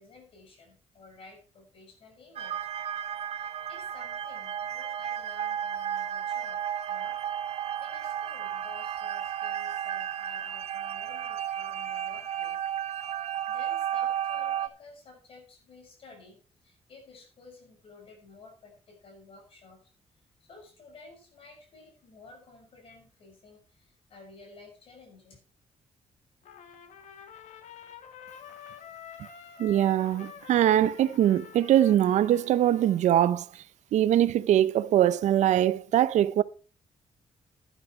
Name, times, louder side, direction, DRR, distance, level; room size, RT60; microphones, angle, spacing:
voice 1, 0.0-2.6 3.2-3.4 3.7-6.6 6.9-7.2 7.8-12.6 13.0-19.9 20.4-25.4, left 3 dB, 50° left, 6.0 m, -53 dB
sound 1, 2.4-14.7, right 10 dB, 60° right, 0.9 m, -33 dB
Trumpet, 26.4-33.2, left 8 dB, 75° left, 1.8 m, -48 dB
voice 2, 29.6-33.5 33.9-36.4, right 11 dB, 80° right, 0.6 m, -22 dB
11.0 x 11.0 x 4.7 m
wide cardioid pair, 180°, 12 cm